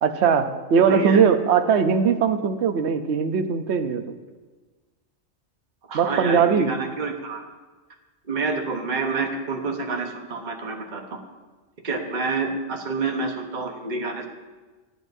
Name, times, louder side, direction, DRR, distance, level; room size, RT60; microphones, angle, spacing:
voice 1, 0.0-4.1 5.9-6.7, right 6 dB, 65° right, 8 dB, 1.1 m, -20 dB
voice 2, 0.9-1.3 5.9-7.4 8.3-11.2 11.8-14.3, right 3 dB, 40° right, 2 dB, 1.2 m, -28 dB
22.5 x 9.8 x 2.7 m, 1.3 s
omnidirectional pair, 1.2 m